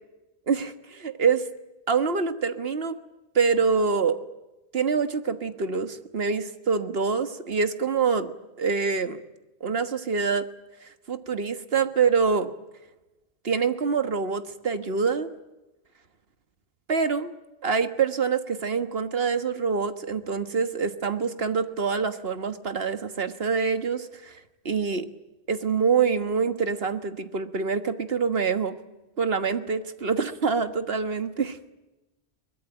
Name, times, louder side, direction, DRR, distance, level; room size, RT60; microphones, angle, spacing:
voice 1, 0.5-1.4 1.9-3.0 3.3-4.2 4.7-8.3 8.6-9.2 9.6-10.5 11.1-12.5 13.4-15.3 16.9-17.3 17.6-24.4 24.6-25.1 25.5-28.8 29.2-31.6, right 5 dB, 60° right, 10 dB, 1.6 m, -25 dB
23.0 x 20.5 x 9.0 m, 1.0 s
omnidirectional pair, 1.1 m